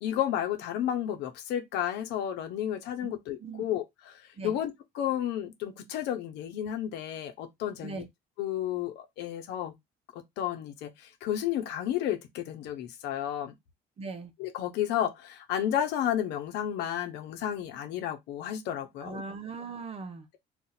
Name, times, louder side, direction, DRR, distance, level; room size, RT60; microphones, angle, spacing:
voice 1, 0.0-8.0 8.4-9.7 10.1-13.6 14.4-19.2, left 10 dB, 90° left, 0.8 m, -32 dB
voice 2, 3.0-3.6 4.4-4.6 7.8-8.1 14.0-14.3 19.0-20.3, right 4 dB, 35° right, 0.7 m, -40 dB
2.7 x 2.4 x 3.9 m
cardioid pair, 110°, 17 cm